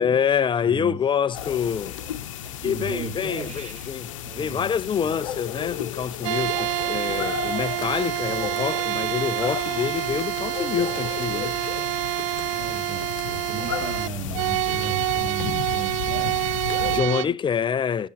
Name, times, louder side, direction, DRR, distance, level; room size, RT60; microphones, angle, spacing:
voice 1, 0.0-2.0 2.6-4.1 4.4-11.6 16.8-18.1, left 7 dB, 30° left, 0.6 m, -26 dB
voice 2, 0.6-1.0 1.9-3.9 4.2-4.7 5.0-5.1 12.5-17.3, right 6 dB, 40° right, 2.6 m, -37 dB
sound 1, 1.3-17.0, left 10 dB, 80° left, 0.9 m, -34 dB
sound 2, 6.2-17.3, right 21 dB, 75° right, 0.5 m, -27 dB
19.5 x 7.0 x 2.9 m
hypercardioid pair, 75°, 16 cm